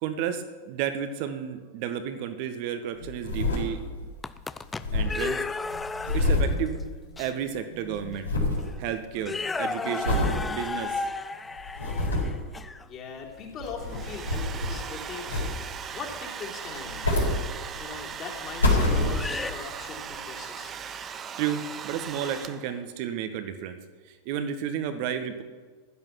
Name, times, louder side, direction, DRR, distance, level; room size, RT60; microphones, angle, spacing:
voice 1, 0.0-3.8 4.9-5.4 6.1-6.8 7.2-8.3 8.8-10.9 21.4-23.8 24.2-25.4, right 9 dB, 45° right, 9 dB, 1.4 m, -32 dB
sound 1, 3.0-4.1 4.4-4.5 4.7-7.4 7.7-8.7 9.2-9.5 10.0-10.4 10.9-11.0 11.6-12.4 13.4-14.9 15.3-15.9 16.7-18.0 18.4-19.6 20.1-20.2, left 2 dB, 75° left, 4.6 m, -27 dB
sound 2, 4.0-6.5 7.2-7.3 8.1-8.2 8.6-8.8 9.2-12.8 16.0-16.2 17.9-18.0 19.1-19.5, left 4 dB, 10° left, 0.6 m, -33 dB
voice 2, 12.8-15.2 15.9-17.1 17.8-20.7, left 5 dB, 30° left, -2 dB, 3.5 m, -40 dB
Domestic sounds home sounds, 13.7-22.9, right 7 dB, 25° right, 0.9 m, -39 dB
15.5 x 11.5 x 6.0 m, 1.4 s
figure-of-eight pair, 90°, 0 cm